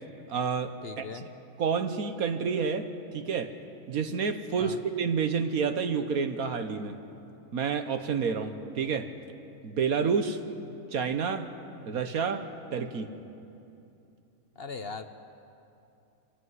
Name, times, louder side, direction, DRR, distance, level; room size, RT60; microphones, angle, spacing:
voice 1, 0.3-1.0 1.6-3.5 3.9-7.0 7.5-9.1 9.6-10.4 10.9-11.5 11.9-12.4 12.7-13.1, right 6 dB, 75° right, 8 dB, 1.6 m, -29 dB
voice 2, 0.8-1.3 4.6-4.8 14.6-15.1, left 4 dB, 50° left, 9 dB, 0.9 m, -39 dB
25.0 x 16.5 x 9.6 m, 2.8 s
omnidirectional pair, 1.6 m